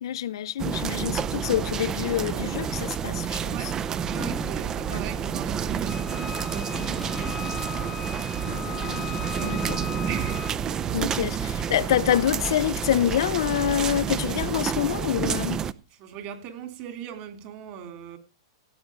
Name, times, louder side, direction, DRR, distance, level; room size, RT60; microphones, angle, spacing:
voice 1, 0.0-3.7 4.9-5.0 8.5-9.8 10.9-15.6, left 11 dB, 65° left, 0.6 m, -27 dB
sound 1, 0.6-15.7, right 8 dB, 25° right, 0.6 m, -29 dB
sound 2, 2.6-3.1 3.9-4.8 6.4-7.6, equal, ahead, 1.0 m, -38 dB
voice 2, 4.0-8.2 9.3-9.6 10.0-10.9 16.0-18.2, right 9 dB, 45° right, 3.3 m, -39 dB
Wind instrument woodwind instrument, 5.9-10.6, left 10 dB, 25° left, 0.8 m, -39 dB
16.5 x 7.9 x 5.1 m
hypercardioid pair, 115°, 3 cm